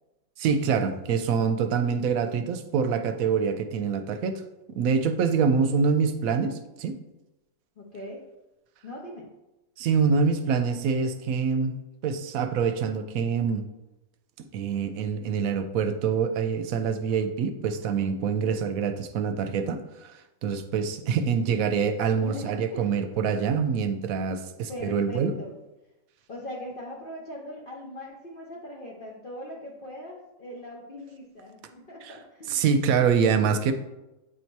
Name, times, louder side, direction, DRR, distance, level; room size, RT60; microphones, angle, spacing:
voice 1, 0.4-4.4 4.7-7.0 9.8-11.7 12.0-13.7 14.5-19.8 20.4-25.3 32.0-32.1 32.5-33.7, right 6 dB, 80° right, 8 dB, 1.0 m, -25 dB
voice 2, 7.8-8.2 8.8-9.3 22.2-22.9 24.7-25.6 26.3-32.6, left 1 dB, 45° left, -4 dB, 0.9 m, -40 dB
8.2 x 2.8 x 4.5 m, 0.99 s
omnidirectional pair, 1.5 m